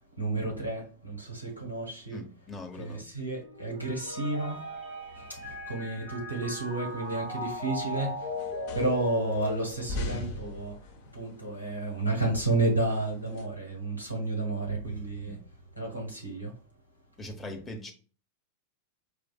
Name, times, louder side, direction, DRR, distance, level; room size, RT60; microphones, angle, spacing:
voice 1, 0.2-2.2 2.7-4.6 5.1-10.8 11.1-15.4 15.8-16.5 17.4-17.5, right 2 dB, 90° right, 1.3 m, -31 dB
voice 2, 2.1-3.0 15.2-15.3 17.2-17.9, left 2 dB, 15° left, 0.9 m, -41 dB
sound 1, 3.3-7.2, right 3 dB, 90° left, 0.7 m, -45 dB
Mallet percussion, 4.4-10.6, left 2 dB, 15° right, 1.4 m, -39 dB
sound 2, 6.8-13.5, left 2 dB, 45° left, 0.7 m, -42 dB
4.6 x 2.5 x 2.3 m
figure-of-eight pair, 90°, 0 cm